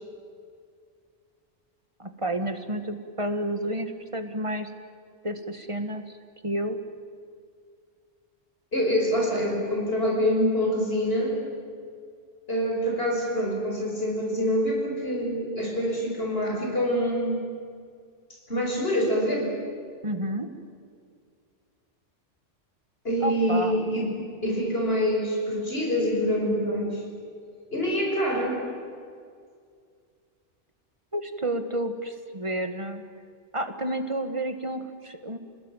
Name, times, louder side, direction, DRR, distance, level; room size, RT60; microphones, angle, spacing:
voice 1, 2.0-4.7 5.2-6.2 6.4-6.8 20.0-20.5 23.2-23.8 31.1-33.0 33.5-35.4, right 1 dB, 25° right, 7 dB, 1.8 m, -30 dB
voice 2, 8.7-11.4 12.5-17.4 18.5-19.5 23.0-24.1 24.4-27.0 27.7-28.6, equal, 55° left, -1 dB, 5.6 m, -25 dB
28.5 x 20.0 x 9.3 m, 2.2 s
omnidirectional pair, 1.2 m